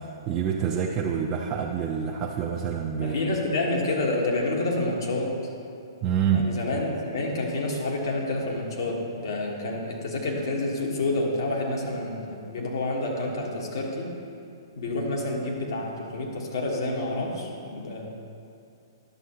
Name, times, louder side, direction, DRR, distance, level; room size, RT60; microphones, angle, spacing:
voice 1, 0.0-3.2 6.0-6.5, right 7 dB, 30° right, 0 dB, 0.5 m, -27 dB
voice 2, 3.0-5.5 6.3-14.1 14.7-18.1, left 2 dB, 65° left, -1 dB, 1.6 m, -28 dB
11.0 x 7.1 x 3.0 m, 2.5 s
figure-of-eight pair, 120°, 2 cm